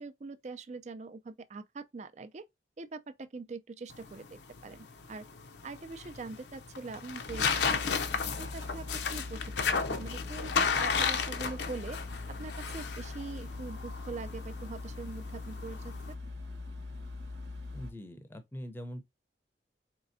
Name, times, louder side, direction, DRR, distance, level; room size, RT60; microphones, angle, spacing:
voice 1, 0.0-2.5 2.8-5.3 5.6-8.8 9.1-12.0 12.4-16.2, right 3 dB, 40° right, 0.4 m, -43 dB
sound 1, 3.9-16.1, left 5 dB, 75° left, 0.6 m, -34 dB
sound 2, 7.3-17.9, left 3 dB, 90° right, 1.0 m, -42 dB
voice 2, 8.1-8.4 17.7-19.0, equal, 10° left, 0.6 m, -43 dB
4.5 x 3.2 x 2.6 m
head